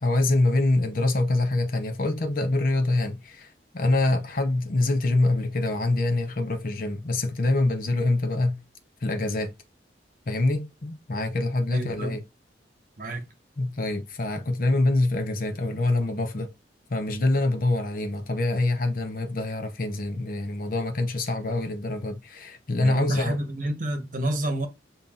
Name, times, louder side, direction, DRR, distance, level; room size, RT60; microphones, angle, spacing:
voice 1, 0.0-8.6 9.0-9.5 10.3-12.2 13.6-16.5 16.9-23.4, left 2 dB, 50° left, 0.7 m, -25 dB
voice 2, 11.7-12.2 13.0-13.2 22.8-24.7, right 1 dB, 50° right, 1.0 m, -29 dB
7.1 x 2.7 x 2.4 m
head